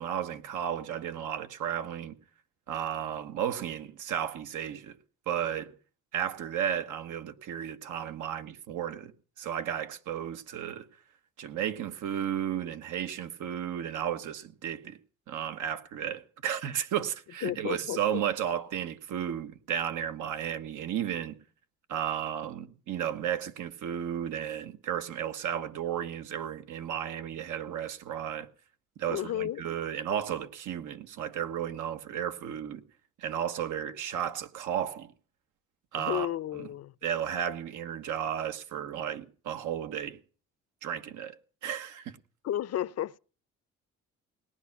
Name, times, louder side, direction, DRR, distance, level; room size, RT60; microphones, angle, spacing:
voice 1, 0.0-2.2 2.7-5.0 5.3-5.7 6.1-9.1 9.4-10.9 11.4-15.0 15.3-21.4 21.9-28.5 29.0-32.8 33.2-35.1 35.9-36.7 37.0-40.2 40.8-41.4 41.6-42.2, right 9 dB, 80° right, 1.4 m, -33 dB
voice 2, 17.4-18.2 29.1-29.6 36.0-36.9 42.4-43.2, left 12 dB, 55° left, 0.6 m, -32 dB
18.5 x 11.0 x 5.9 m
cardioid pair, 90°, 30 cm